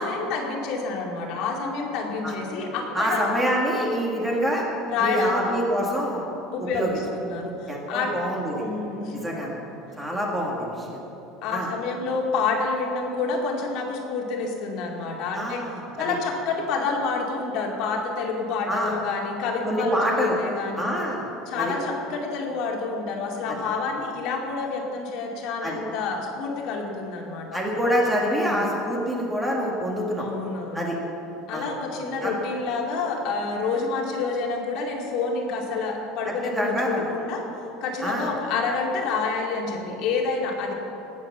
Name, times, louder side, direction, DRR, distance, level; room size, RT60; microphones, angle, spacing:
voice 1, 0.0-3.3 4.9-5.6 6.5-8.1 8.6-9.3 11.4-15.6 16.0-21.0 21.5-27.6 28.2-28.7 30.2-30.9 31.5-37.5 37.8-40.7, left 4 dB, 50° left, 0 dB, 2.3 m, -28 dB
voice 2, 2.9-4.6 5.0-6.3 6.6-7.0 7.7-8.6 9.1-9.6 10.0-11.0 11.5-11.7 15.3-15.8 18.7-18.9 19.6-20.4 20.8-21.3 21.6-21.7 23.5-23.6 25.6-25.8 27.5-30.3 30.7-31.0 31.5-31.7 32.2-32.3 36.2-37.1 38.0-38.3, equal, 5° right, -2 dB, 1.9 m, -26 dB
19.0 x 8.0 x 7.2 m, 3.0 s
cardioid pair, 175°, 0 cm